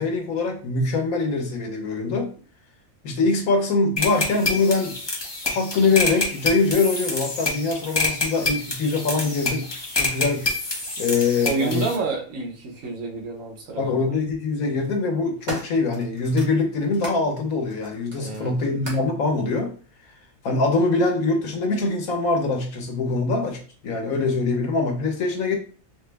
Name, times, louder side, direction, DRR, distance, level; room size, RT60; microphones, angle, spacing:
voice 1, 0.0-2.3 3.0-5.0 5.4-9.7 9.9-10.5 11.0-11.9 13.8-19.7 20.4-25.6, left 3 dB, 85° left, 3 dB, 1.3 m, -23 dB
sound 1, 4.0-12.0, left 3 dB, 25° left, 0.6 m, -27 dB
voice 2, 11.4-14.2 18.1-18.6, right 4 dB, 70° right, 0 dB, 1.2 m, -29 dB
sound 2, 12.8-12.9 14.0-14.4 14.9-17.2 17.7-19.2 20.0-20.1, right 1 dB, 35° right, 1.0 m, -38 dB
3.8 x 2.0 x 3.3 m, 0.40 s
omnidirectional pair, 1.4 m